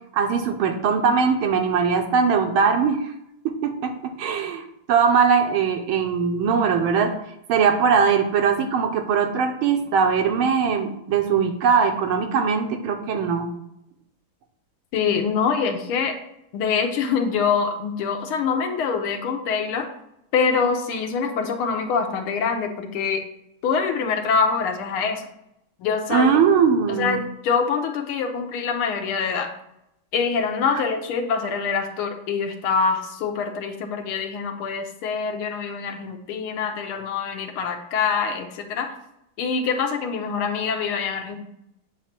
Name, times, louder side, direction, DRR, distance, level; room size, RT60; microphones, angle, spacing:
voice 1, 0.1-3.1 3.4-7.2 7.5-13.5 26.1-27.2, right 6 dB, 75° right, 5 dB, 1.6 m, -21 dB
voice 2, 14.9-16.2 16.5-19.9 20.3-23.2 23.6-25.3 25.8-26.3 27.0-29.5 30.1-38.9 39.4-41.4, left 5 dB, 80° left, 5 dB, 1.7 m, -24 dB
8.4 x 3.1 x 5.8 m, 0.80 s
omnidirectional pair, 2.3 m